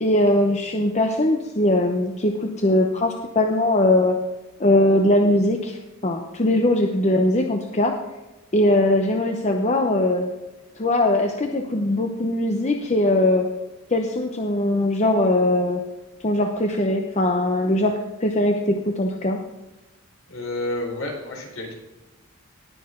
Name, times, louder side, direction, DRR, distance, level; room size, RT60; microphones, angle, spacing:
voice 1, 0.0-4.2 4.6-7.9 8.5-10.3 10.8-13.5 13.9-15.8 16.2-19.4, left 1 dB, 30° left, 3 dB, 0.8 m, -20 dB
voice 2, 20.3-21.7, left 2 dB, 60° left, -1 dB, 4.0 m, -30 dB
19.0 x 6.7 x 3.8 m, 1.1 s
head